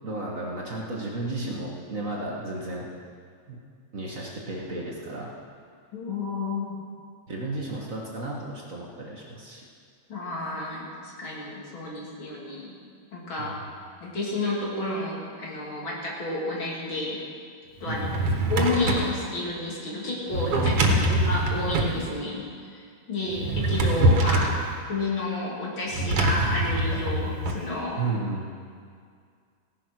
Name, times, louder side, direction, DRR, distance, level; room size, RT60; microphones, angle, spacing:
voice 1, 0.0-2.9 3.5-3.6 3.9-5.3 7.3-9.7 13.4-13.5 17.9-18.3 20.5-21.2 28.0-28.5, right 2 dB, 40° right, -3 dB, 1.8 m, -33 dB
voice 2, 5.9-6.8 10.1-12.8 13.1-13.6 14.0-17.2 17.8-18.1 18.5-20.7 21.1-22.8 23.1-24.6 24.9-28.0, left 2 dB, 65° left, -4 dB, 3.5 m, -30 dB
Drawer open or close, 17.8-19.2 20.3-22.0 23.3-24.6 25.9-27.6, right 1 dB, 90° right, 2.3 m, -24 dB
17.0 x 10.0 x 6.1 m, 2.2 s
omnidirectional pair, 2.4 m